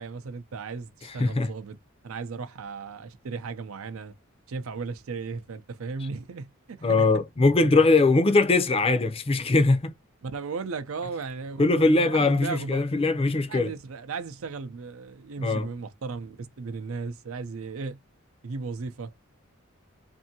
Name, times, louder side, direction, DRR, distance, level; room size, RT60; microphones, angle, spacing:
voice 1, 0.0-1.8 2.0-4.1 4.5-7.1 10.2-12.9 13.5-18.0 18.4-19.1, right 4 dB, 80° right, 0.6 m, -36 dB
voice 2, 1.2-1.5 6.8-9.9 11.6-13.7 15.4-15.7, left 3 dB, 30° left, 0.5 m, -21 dB
2.7 x 2.6 x 2.6 m
head